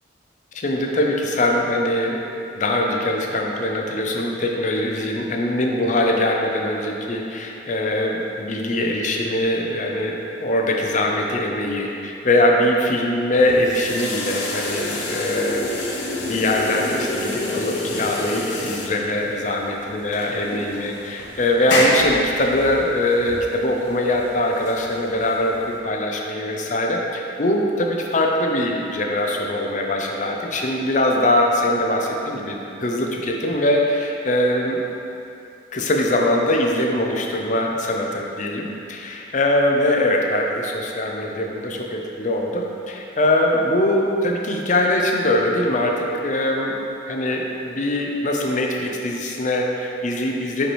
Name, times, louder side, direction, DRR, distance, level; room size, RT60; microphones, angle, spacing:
voice 1, 0.5-2.2 2.5-15.9 16.2-34.8 35.7-46.0 46.2-46.8 47.1-50.7, left 1 dB, 45° left, 1 dB, 0.6 m, -22 dB
sound 1, 13.3-25.8, left 1 dB, 90° left, 0.9 m, -28 dB
5.8 x 5.1 x 3.3 m, 2.7 s
head